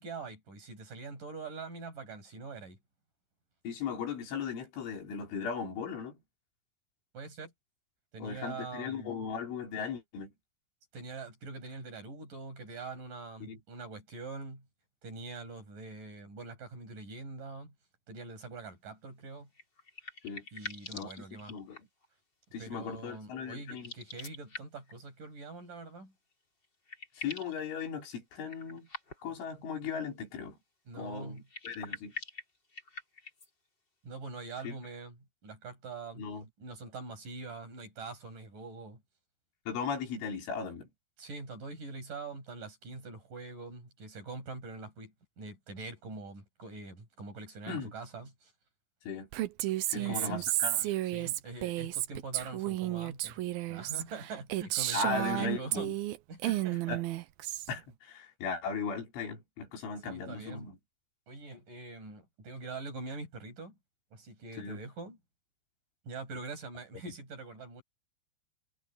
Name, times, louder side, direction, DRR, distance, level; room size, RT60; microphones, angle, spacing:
voice 1, 0.0-2.8 7.1-7.5 8.1-9.2 10.9-14.7 15.0-17.7 18.1-19.5 20.5-21.5 22.6-26.1 30.9-31.4 34.0-35.2 35.4-36.2 36.6-39.0 41.2-48.5 49.9-50.4 51.1-53.4 53.7-55.9 56.3-57.0 60.0-60.7 61.3-63.8 64.1-65.2 66.0-67.8, right 3 dB, 45° right, 8.5 m, -44 dB
voice 2, 3.7-6.2 8.2-10.3 13.4-13.6 20.2-20.5 20.9-21.1 21.5-21.8 22.5-23.9 27.2-28.9 29.2-30.6 31.0-32.1 34.6-34.8 36.2-36.5 39.7-40.9 47.7-47.9 49.0-49.3 49.9-51.0 54.9-55.9 56.4-56.5 56.9-57.0 57.7-60.8 64.5-64.8, left 5 dB, 85° left, 6.9 m, -37 dB
sound 1, 19.5-22.1 23.7-25.0 26.3-26.4 26.6-27.6 28.4-29.4 31.3-33.5, left 3 dB, 20° left, 5.2 m, -45 dB
Female speech woman speaking, 49.3-56.2 56.4-57.7, right 15 dB, 80° right, 2.2 m, -32 dB
omnidirectional pair, 5.4 m